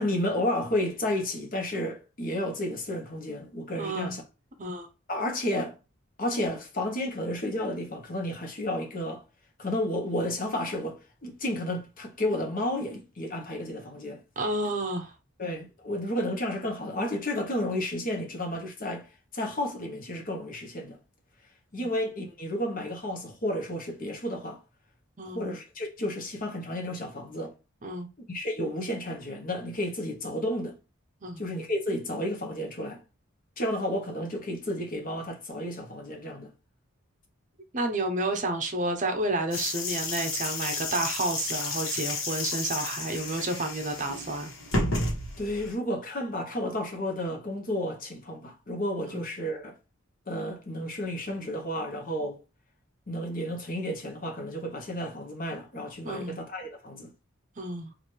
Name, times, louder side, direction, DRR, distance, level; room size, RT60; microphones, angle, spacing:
voice 1, 0.0-4.2 5.1-5.8 6.2-9.2 9.6-14.2 15.4-21.0 21.7-24.6 25.3-27.5 28.3-30.8 31.4-33.0 33.6-36.5 45.4-49.7 50.3-52.4 53.1-57.1, left 1 dB, 45° left, 0.9 m, -32 dB
voice 2, 3.8-4.1 4.6-4.9 14.4-15.1 21.8-21.9 25.2-25.4 27.8-28.1 31.2-31.4 37.7-44.5 49.1-49.2 56.0-56.4 57.6-57.9, right 2 dB, 40° right, 0.7 m, -30 dB
sound 1, 39.5-45.7, left 2 dB, 75° left, 1.2 m, -32 dB
3.2 x 2.5 x 4.4 m
head